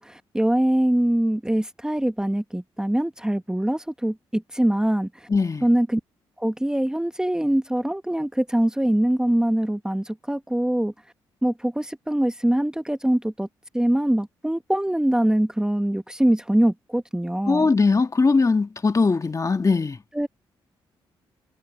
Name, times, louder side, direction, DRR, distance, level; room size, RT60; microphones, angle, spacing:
voice 1, 0.0-5.3 5.6-6.0 6.4-10.9 11.4-13.5 13.7-17.7 20.1-20.3, right 1 dB, 5° right, 1.3 m, -23 dB
voice 2, 5.3-5.7 17.5-20.0, left 4 dB, 35° left, 2.0 m, -20 dB
supercardioid pair, 60°, 10 cm